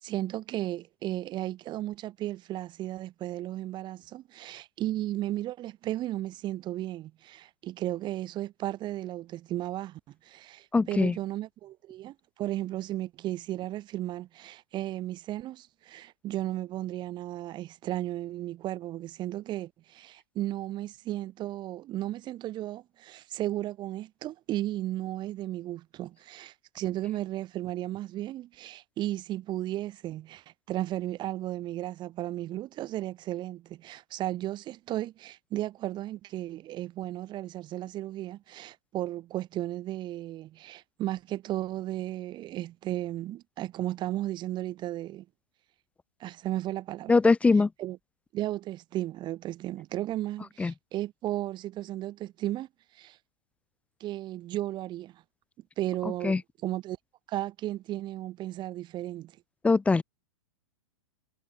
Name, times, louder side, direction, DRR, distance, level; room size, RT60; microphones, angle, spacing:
voice 1, 0.0-45.3 46.2-47.2 47.8-48.0 48.3-52.7 52.9-53.2 54.0-55.2 55.8-57.0 57.3-59.3, right 14 dB, 25° right, 7.6 m, -34 dB
voice 2, 10.7-11.1 47.1-47.7 50.6-50.7 56.2-56.4 59.6-60.0, left 4 dB, 5° left, 1.3 m, -22 dB
hypercardioid pair, 145°, 17 cm